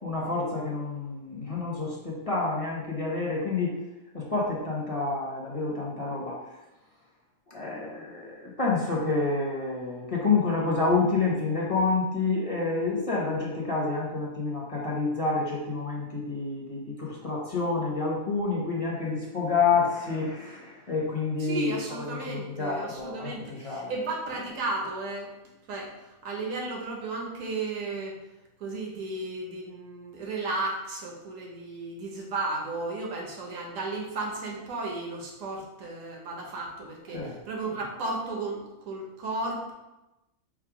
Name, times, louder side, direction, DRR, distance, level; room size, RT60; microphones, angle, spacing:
voice 1, 0.0-3.7 4.1-6.4 7.5-23.9 37.1-37.3, left 4 dB, 30° left, -4 dB, 0.8 m, -28 dB
voice 2, 21.4-25.3 25.7-25.9 26.2-28.2 28.6-39.7, right 2 dB, 70° right, -1 dB, 1.3 m, -34 dB
4.7 x 2.2 x 4.8 m, 0.99 s
omnidirectional pair, 1.4 m